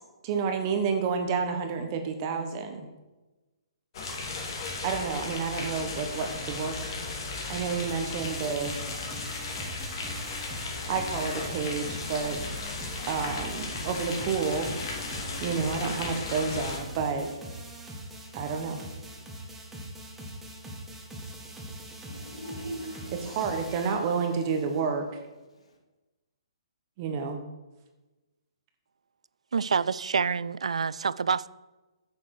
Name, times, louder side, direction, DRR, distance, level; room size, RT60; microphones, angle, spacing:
voice 1, 0.2-2.9 4.8-6.7 7.5-8.8 10.9-12.4 13.1-14.7 15.4-17.3 18.3-18.8 23.2-25.2 27.0-27.4, right 5 dB, 35° right, 1.1 m, -30 dB
sound 1, 3.9-16.8, left 3 dB, 50° left, 2.5 m, -35 dB
sound 2, 8.2-24.8, right 1 dB, 5° right, 1.7 m, -43 dB
voice 2, 20.2-24.5 25.5-25.8, right 1 dB, 80° left, 2.8 m, -45 dB
voice 3, 29.5-31.5, right 5 dB, 85° right, 0.3 m, -27 dB
9.2 x 6.9 x 4.9 m
hypercardioid pair, 145°, 3 cm